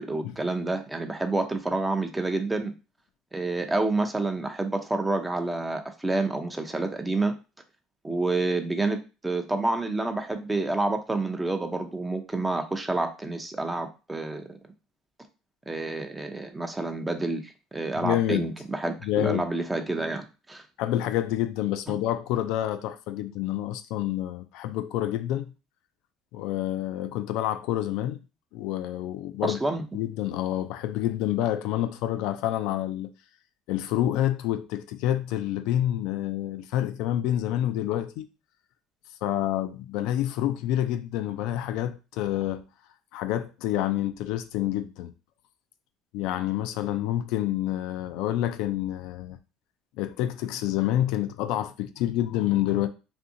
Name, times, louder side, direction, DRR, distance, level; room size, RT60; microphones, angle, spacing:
voice 1, 0.0-2.7 3.3-7.3 8.0-9.0 9.2-14.6 15.7-20.6 21.9-22.0 29.4-29.8, right 2 dB, 15° right, 0.5 m, -28 dB
voice 2, 18.0-18.5 19.0-19.5 20.8-25.5 26.3-28.2 28.5-29.6 29.9-33.1 33.7-38.3 39.2-42.6 43.1-45.1 46.1-49.4 50.0-52.9, left 12 dB, 75° left, 0.3 m, -28 dB
2.7 x 2.5 x 2.6 m
supercardioid pair, 85°, 0 cm